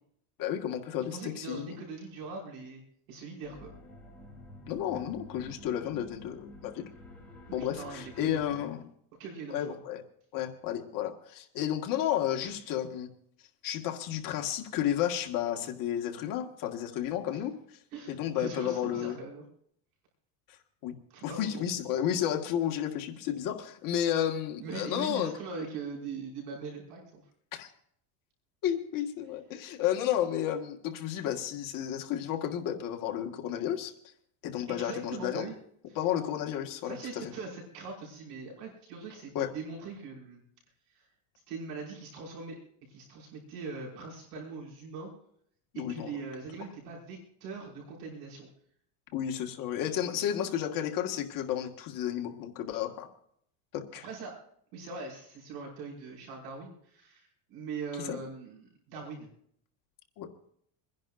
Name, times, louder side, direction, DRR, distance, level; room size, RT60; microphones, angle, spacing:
voice 1, 0.4-1.8 4.7-6.8 7.5-8.8 9.5-10.0 10.3-13.1 13.6-17.8 18.1-19.2 20.5-20.6 20.8-20.9 21.2-25.3 27.5-27.7 28.6-33.9 34.4-35.5 36.0-37.3 39.4-39.5 45.7-46.1 49.1-53.1 53.7-54.0 58.0-58.2 60.2-60.5, left 10 dB, 45° left, 3 dB, 1.7 m, -32 dB
voice 2, 1.1-2.8 3.1-3.7 7.5-8.7 9.2-9.8 12.4-12.5 17.3-17.4 17.9-19.4 21.1-21.7 24.6-27.2 34.7-35.5 35.9-36.0 36.8-40.4 40.9-41.1 41.5-42.6 42.9-45.1 45.7-48.5 54.0-54.4 54.7-59.3, right 4 dB, 75° right, -2 dB, 5.8 m, -41 dB
sound 1, 3.4-8.6, left 1 dB, 5° left, 3.0 m, -50 dB
27.5 x 10.5 x 2.6 m, 0.67 s
cardioid pair, 140°, 46 cm